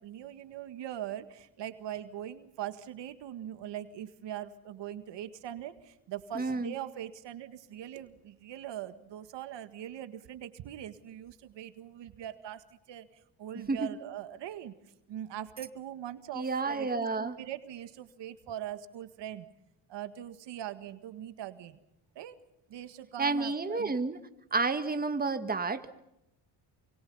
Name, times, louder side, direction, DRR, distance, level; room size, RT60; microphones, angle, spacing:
voice 1, 0.0-13.1 13.4-14.7 15.1-19.5 19.9-21.8 22.2-22.4 22.7-23.9, right 11 dB, 75° right, 10 dB, 1.9 m, -41 dB
voice 2, 6.3-6.7 13.7-13.9 16.3-17.4 23.2-24.2 24.5-25.9, right 3 dB, 20° right, 8 dB, 1.8 m, -30 dB
28.0 x 25.0 x 5.6 m, 0.85 s
cardioid pair, 90°, 44 cm